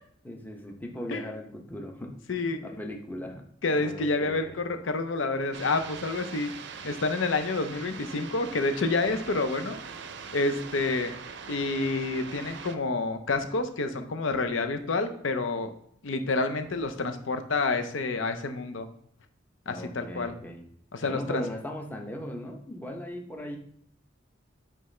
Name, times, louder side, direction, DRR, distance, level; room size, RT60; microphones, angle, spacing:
voice 1, 0.2-3.4 3.8-4.6 19.7-20.6 21.0-23.6, equal, 10° left, 2 dB, 0.7 m, -38 dB
voice 2, 2.3-2.8 3.6-6.5 6.8-9.8 10.3-11.1 11.5-15.7 16.0-18.9 19.7-20.4 20.9-21.4, left 3 dB, 75° left, 8 dB, 0.6 m, -28 dB
sound 1, 5.5-12.8, right 6 dB, 60° right, 0.5 m, -42 dB
9.1 x 3.4 x 3.2 m, 0.66 s
head